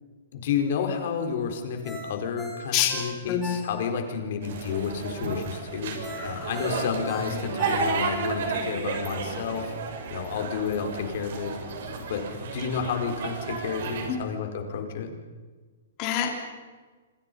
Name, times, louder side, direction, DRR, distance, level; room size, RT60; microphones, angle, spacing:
voice 1, 0.3-9.7 10.1-15.1, left 6 dB, 50° left, 4 dB, 4.7 m, -31 dB
Ringtone, 1.8-4.1 4.5-4.6 6.0-8.3 8.7-8.8, left 1 dB, ahead, 6.6 m, -40 dB
sound 1, 4.4-14.1, right 4 dB, 55° right, 6.7 m, -32 dB
voice 2, 16.0-16.4, left 11 dB, 30° left, 1 dB, 3.9 m, -26 dB
28.0 x 26.5 x 5.5 m, 1.4 s
hypercardioid pair, 165°, 0 cm